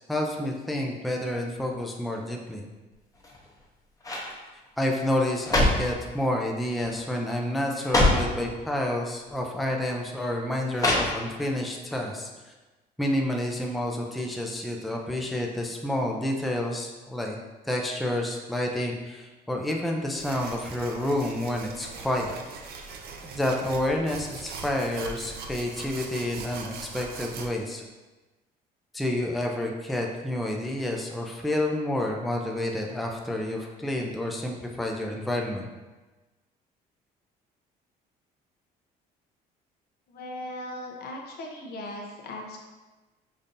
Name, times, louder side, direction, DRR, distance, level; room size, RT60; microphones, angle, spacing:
voice 1, 0.1-2.7 4.8-12.3 13.0-17.4 17.7-22.3 22.8-27.8 28.9-35.6, left 1 dB, ahead, 0 dB, 0.4 m, -29 dB
sound 1, 3.1-3.6 4.0-4.3 5.1-6.0 6.8-7.0 7.3-7.4 7.8-8.3 9.3-9.4 10.7-11.5 11.9-12.0, left 2 dB, 20° left, 0.9 m, -24 dB
sound 2, 20.1-27.5, right 4 dB, 65° right, 0.5 m, -41 dB
voice 2, 40.1-42.6, left 1 dB, 70° left, 0 dB, 0.8 m, -38 dB
5.2 x 2.7 x 2.6 m, 1.2 s
cardioid pair, 110°, 17 cm